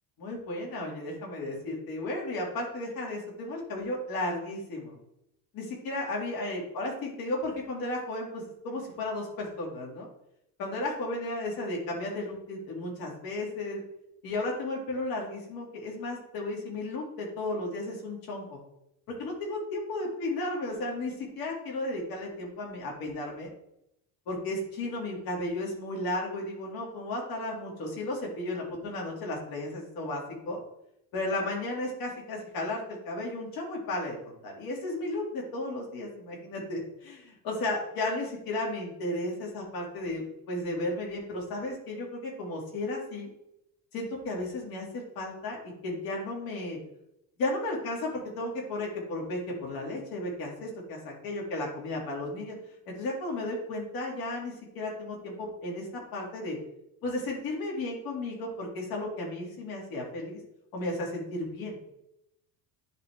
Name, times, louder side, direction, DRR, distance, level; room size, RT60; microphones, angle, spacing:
voice 1, 0.2-5.0 5.5-10.1 10.6-13.8 14.2-18.6 19.1-23.5 24.3-30.6 31.1-43.3 43.9-46.8 47.4-52.6 52.9-55.9 56.1-56.6 57.0-60.4 60.7-61.8, left 2 dB, 55° left, -2 dB, 2.2 m, -34 dB
10.5 x 3.6 x 3.4 m, 0.81 s
cardioid pair, 180°, 41 cm